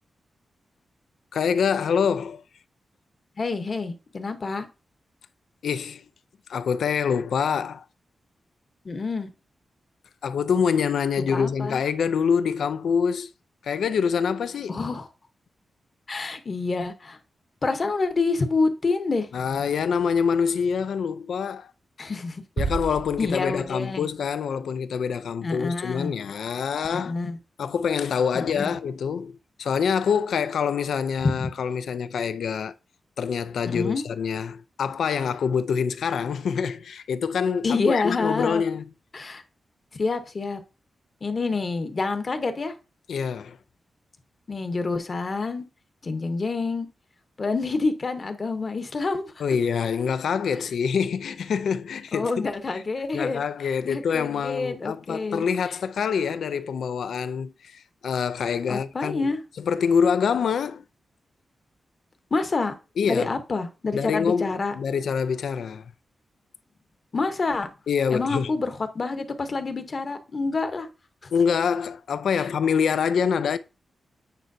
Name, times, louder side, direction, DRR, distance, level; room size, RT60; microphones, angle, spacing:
voice 1, 1.3-2.4 5.6-6.0 6.5-7.8 10.2-13.3 13.6-14.8 19.3-21.7 22.6-27.2 27.6-29.3 29.6-32.7 33.2-38.8 43.1-43.6 49.4-52.4 52.7-52.8 53.1-59.3 59.6-60.8 63.0-63.4 63.9-65.9 67.9-68.5 71.3-73.6, left 6 dB, 85° left, 0.4 m, -25 dB
voice 2, 3.4-4.7 8.8-9.3 11.3-11.8 14.7-15.1 16.1-17.2 17.6-19.3 22.0-22.4 23.2-24.1 25.4-26.1 26.9-27.4 28.3-28.7 31.2-31.5 33.7-34.0 37.6-38.6 39.1-39.4 40.0-40.6 41.2-42.7 44.5-45.6 46.0-46.9 47.4-49.3 52.1-53.4 53.8-55.4 58.7-59.4 62.3-62.7 63.0-64.7 67.1-67.7 68.1-70.9 71.2-71.3 72.3-72.4, left 3 dB, 40° left, 0.9 m, -27 dB
sound 1, 22.6-24.1, right 4 dB, 50° right, 0.5 m, -32 dB
9.1 x 4.5 x 2.7 m
wide cardioid pair, 125°, 0 cm